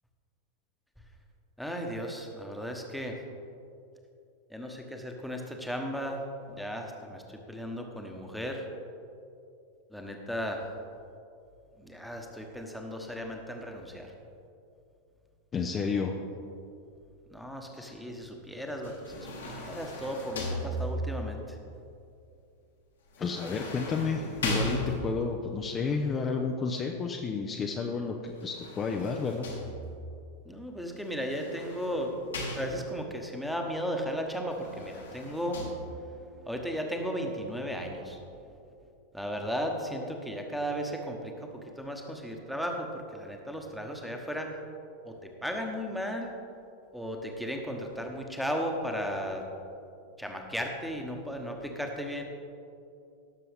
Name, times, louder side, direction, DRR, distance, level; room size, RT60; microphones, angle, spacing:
voice 1, 1.6-3.2 4.5-6.2 6.5-8.7 9.9-10.6 11.8-14.1 17.3-21.6 25.8-26.0 30.4-32.1 32.5-38.2 39.1-44.5 45.0-46.3 46.9-49.4 50.2-52.2, equal, ahead, 2 dB, 1.2 m, -35 dB
voice 2, 15.5-16.2 17.7-17.9 23.2-29.5, left 5 dB, 25° left, 2 dB, 0.7 m, -31 dB
sound 1, 18.8-21.3 23.1-25.4 28.3-30.1 31.1-33.1 34.5-35.7, left 1 dB, 70° left, 2.0 m, -37 dB
17.5 x 6.8 x 3.5 m, 2.6 s
figure-of-eight pair, 90°, 0 cm